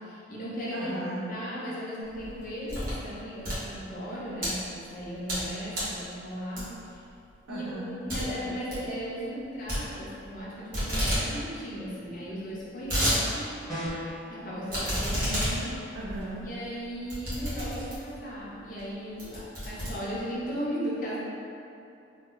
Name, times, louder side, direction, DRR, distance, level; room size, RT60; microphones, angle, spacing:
voice 1, 0.0-0.9 1.2-7.0 7.5-13.5 14.3-15.8 16.4-21.2, equal, 45° left, -8 dB, 0.8 m, -36 dB
voice 2, 0.7-1.3 7.5-8.0 15.9-16.5, right 1 dB, 90° right, -6 dB, 0.5 m, -36 dB
sound 1, 2.1-3.0 3.3-4.5 5.0-5.5 5.7-6.0 6.6-6.9 7.3-7.4 7.7-7.8 8.1-8.2 8.5-8.8 9.7-10.4 10.7-11.2 11.6-11.7 11.8-11.9 12.5-13.2 13.6-13.7 14.7-18.2 18.8-18.9 19.2-20.4, equal, 50° right, 1.2 m, -30 dB
sound 2, 13.7-14.2, equal, ahead, 1.4 m, -33 dB
3.1 x 2.2 x 3.7 m, 2.6 s
head